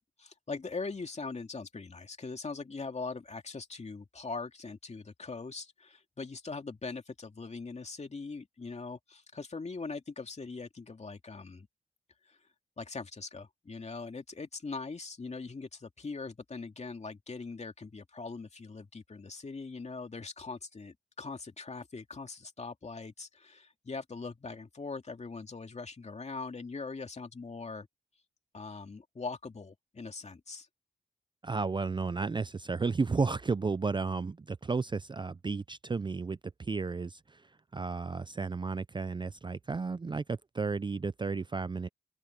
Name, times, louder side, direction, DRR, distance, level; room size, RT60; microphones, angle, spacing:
voice 1, 0.0-11.7 12.2-12.4 12.8-27.9 28.5-30.7, left 4 dB, 40° left, 2.6 m, -41 dB
voice 2, 31.4-41.9, right 4 dB, 25° right, 0.5 m, -33 dB
open air
cardioid pair, 60°, 18 cm